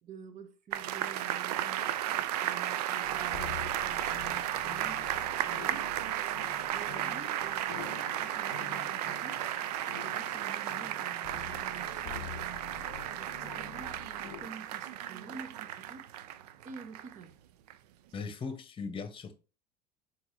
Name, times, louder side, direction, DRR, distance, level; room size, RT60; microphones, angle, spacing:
voice 1, 0.0-5.9 6.7-9.4 9.9-16.1 16.6-17.3, right 6 dB, 40° right, 1.1 m, -49 dB
sound 1, 0.7-17.2 17.7-17.8, right 12 dB, 85° right, 0.4 m, -34 dB
sound 2, 3.0-14.5, left 9 dB, 90° left, 0.5 m, -47 dB
voice 2, 18.1-19.4, left 4 dB, 25° left, 1.0 m, -39 dB
4.6 x 4.3 x 2.7 m
supercardioid pair, 95°, 20 cm